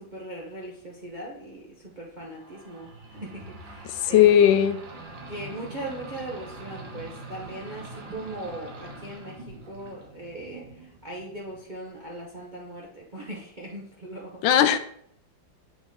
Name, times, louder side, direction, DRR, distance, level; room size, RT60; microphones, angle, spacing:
voice 1, 0.0-2.9 3.2-4.3 5.3-14.4, right 1 dB, 45° right, -3 dB, 0.6 m, -39 dB
sound 1, 2.3-11.7, right 2 dB, 70° right, 1.8 m, -43 dB
voice 2, 3.9-4.8 14.4-14.8, left 10 dB, 80° left, 10 dB, 1.3 m, -18 dB
7.3 x 3.9 x 3.6 m, 0.67 s
omnidirectional pair, 2.1 m